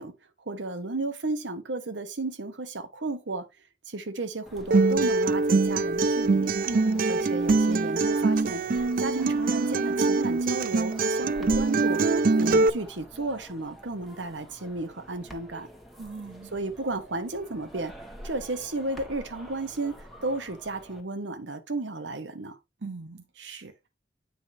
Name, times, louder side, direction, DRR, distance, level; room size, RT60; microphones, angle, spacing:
voice 1, 0.0-3.5 3.9-6.5 7.1-15.7 16.5-17.9 18.2-22.6, right 2 dB, 90° right, 1.2 m, -33 dB
sound 1, 4.5-21.0, equal, ahead, 1.5 m, -46 dB
Acoustic guitar, 4.7-12.7, right 3 dB, 50° right, 0.4 m, -23 dB
voice 2, 6.7-7.3 16.0-16.5 22.8-23.9, right 3 dB, 70° right, 0.9 m, -38 dB
9.1 x 5.3 x 2.7 m
head